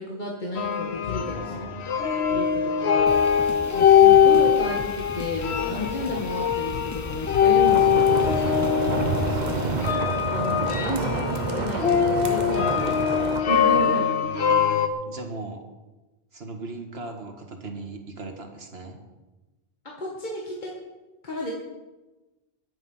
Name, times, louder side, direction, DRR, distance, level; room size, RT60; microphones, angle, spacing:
voice 1, 0.0-1.5 2.1-3.2 3.7-8.4 10.1-14.1 19.8-20.7 21.2-21.5, left 1 dB, 45° left, -2 dB, 2.1 m, -32 dB
sound 1, 0.6-14.9, left 8 dB, 85° left, 1.2 m, -22 dB
voice 2, 1.3-1.9 9.1-9.8 14.2-15.6 16.3-19.0, right 2 dB, 75° right, 3 dB, 2.1 m, -38 dB
sound 2, 3.1-9.9, left 2 dB, 20° left, 0.7 m, -38 dB
sound 3, 7.7-13.4, right 4 dB, 45° right, 1.0 m, -28 dB
21.0 x 8.2 x 5.6 m, 1.1 s
omnidirectional pair, 1.1 m